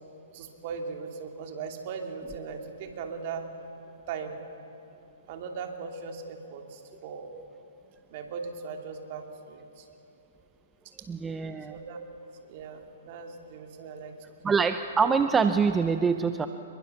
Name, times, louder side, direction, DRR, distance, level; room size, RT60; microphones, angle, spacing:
voice 1, 0.3-3.5 4.1-4.4 5.3-7.3 8.1-9.9 11.7-12.0 12.5-14.1, right 5 dB, 45° right, 3 dB, 3.0 m, -38 dB
voice 2, 11.1-11.8 14.4-16.5, right 5 dB, 10° right, 9 dB, 0.7 m, -25 dB
27.0 x 22.5 x 7.1 m, 2.8 s
hypercardioid pair, 140°, 0 cm